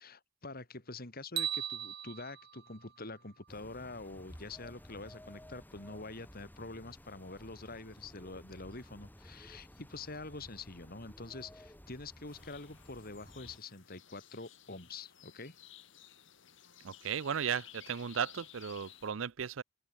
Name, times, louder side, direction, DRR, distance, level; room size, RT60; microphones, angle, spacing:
voice 1, 0.0-15.6, left 3 dB, 50° left, 4.0 m, -46 dB
sound 1, 1.4-3.6, right 11 dB, 60° right, 1.6 m, -39 dB
sound 2, 3.5-13.6, equal, 10° left, 5.4 m, -55 dB
sound 3, 12.3-19.1, left 12 dB, 65° left, 2.6 m, -56 dB
voice 2, 16.8-19.6, right 7 dB, 75° right, 0.6 m, -35 dB
head